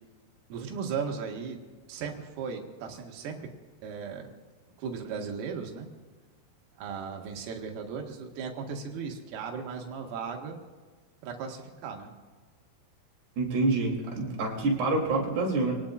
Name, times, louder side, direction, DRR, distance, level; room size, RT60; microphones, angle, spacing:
voice 1, 0.5-1.6 1.9-3.5 3.8-4.3 4.8-5.9 6.8-10.6 11.2-12.1, right 6 dB, 80° right, 1 dB, 4.4 m, -36 dB
voice 2, 13.4-15.7, right 3 dB, 55° right, -2 dB, 4.9 m, -27 dB
27.5 x 19.0 x 2.5 m, 1.4 s
omnidirectional pair, 5.9 m